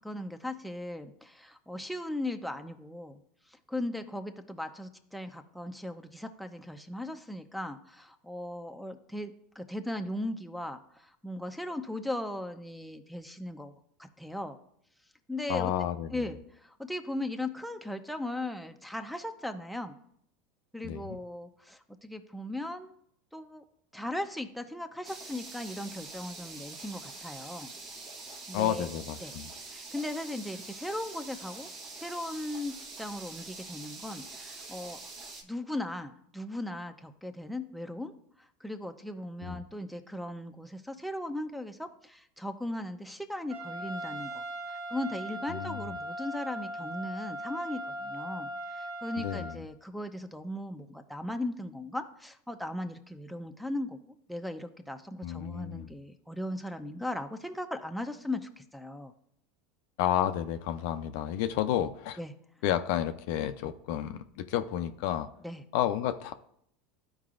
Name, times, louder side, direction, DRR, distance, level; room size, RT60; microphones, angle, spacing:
voice 1, 0.0-3.2 3.7-13.7 14.2-14.6 15.3-15.7 16.1-19.9 20.7-22.9 23.3-23.6 23.9-27.7 28.5-28.9 29.2-29.3 29.7-31.7 32.0-35.0 35.4-38.1 38.6-54.0 54.3-59.1 62.2-62.3 65.4-65.6, left 1 dB, ahead, 5 dB, 0.6 m, -38 dB
voice 2, 15.5-16.3 20.8-21.2 28.5-29.5 39.4-39.6 45.5-46.0 49.2-49.7 55.2-55.9 60.0-62.2 62.6-65.3 65.7-66.3, left 11 dB, 70° left, 9 dB, 0.5 m, -31 dB
sound 1, 25.0-35.4, right 3 dB, 45° right, 1.3 m, -45 dB
Trumpet, 43.5-49.5, right 1 dB, 80° right, 1.5 m, -39 dB
13.0 x 4.7 x 2.5 m, 0.72 s
hypercardioid pair, 95°, 0 cm